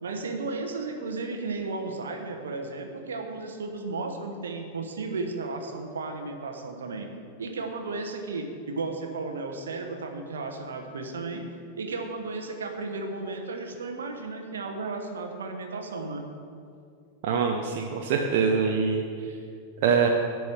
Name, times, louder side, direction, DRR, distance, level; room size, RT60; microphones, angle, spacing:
voice 1, 0.0-7.1 7.4-11.4 11.8-16.2, right 3 dB, 65° right, 4 dB, 1.1 m, -34 dB
voice 2, 17.2-19.0 19.8-20.1, right 6 dB, 50° right, 2 dB, 0.7 m, -24 dB
10.5 x 4.7 x 7.2 m, 2.4 s
figure-of-eight pair, 90°, 0 cm